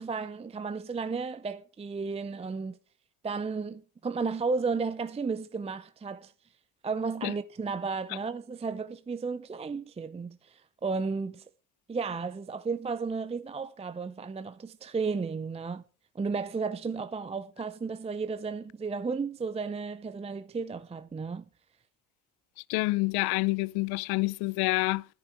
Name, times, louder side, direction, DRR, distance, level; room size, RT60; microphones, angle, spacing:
voice 1, 0.0-2.8 3.2-6.3 6.8-11.4 11.9-15.8 16.1-21.4, right 4 dB, 15° right, 0.6 m, -33 dB
voice 2, 22.7-25.1, left 23 dB, 60° left, 0.5 m, -27 dB
10.5 x 9.8 x 6.1 m
hypercardioid pair, 60°, 42 cm